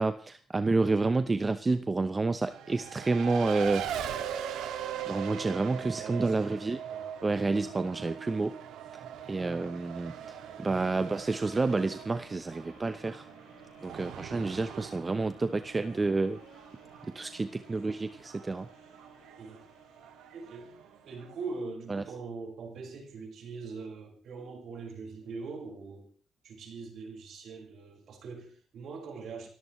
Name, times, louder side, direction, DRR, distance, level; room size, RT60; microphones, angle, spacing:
voice 1, 0.0-3.9 5.1-6.8 7.2-8.6 8.9-9.0 9.3-13.2 13.8-16.4 17.1-18.7 21.9-22.0, right 3 dB, 25° right, 11 dB, 0.8 m, -29 dB
Race car auto racing, 2.5-21.6, right 9 dB, 85° right, 1.9 m, -41 dB
voice 2, 5.9-6.3 6.9-7.1 19.4-19.6 20.3-20.7 21.0-26.1 26.4-29.5, right 4 dB, 65° right, 2 dB, 5.1 m, -42 dB
sound 1, 9.8-21.9 22.4-22.5, equal, 70° left, 6.3 m, -59 dB
29.5 x 14.0 x 3.1 m, 0.43 s
cardioid pair, 90°, 0 cm